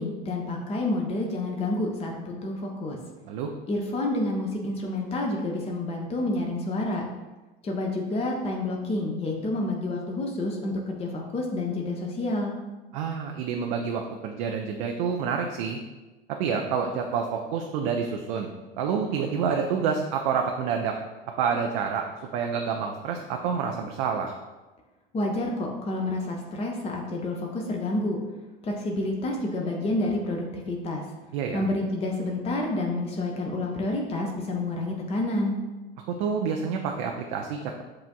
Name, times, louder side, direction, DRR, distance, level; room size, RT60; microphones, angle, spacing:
voice 1, 0.0-3.0 3.7-7.0 7.6-12.5 25.1-28.2 28.6-31.0 31.5-35.6, left 2 dB, 20° left, 0 dB, 0.6 m, -29 dB
voice 2, 12.9-15.8 16.4-18.5 18.7-21.0 21.4-22.1 22.3-24.3 31.3-31.7 36.1-37.8, right 6 dB, 50° right, 3 dB, 0.4 m, -28 dB
7.5 x 2.5 x 2.3 m, 1.2 s
figure-of-eight pair, 75°, 29 cm